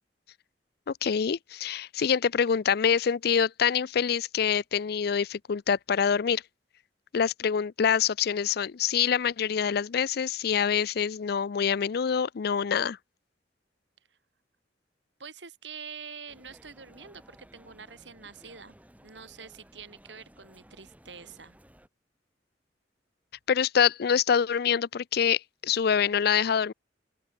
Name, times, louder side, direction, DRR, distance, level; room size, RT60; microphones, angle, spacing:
voice 1, 0.9-6.4 7.1-13.0 23.5-26.7, left 7 dB, 60° left, 0.4 m, -25 dB
voice 2, 15.2-18.8 19.0-21.6, right 6 dB, 90° right, 3.5 m, -46 dB
sound 1, 16.3-21.9, right 1 dB, 10° right, 2.2 m, -56 dB
open air
head